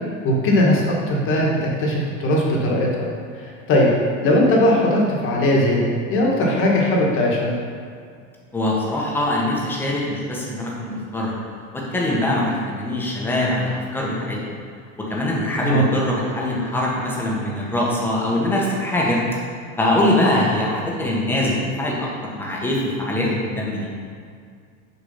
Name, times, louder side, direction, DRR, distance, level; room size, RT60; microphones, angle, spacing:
voice 1, 0.2-3.1 3.3-3.9 4.2-7.5 15.6-15.8, left 1 dB, 30° left, -2 dB, 1.6 m, -19 dB
voice 2, 8.5-11.4 11.7-14.6 15.0-19.2 19.8-23.9, left 1 dB, 5° left, -4 dB, 1.2 m, -23 dB
6.8 x 4.7 x 5.6 m, 2.2 s
supercardioid pair, 150°, 39 cm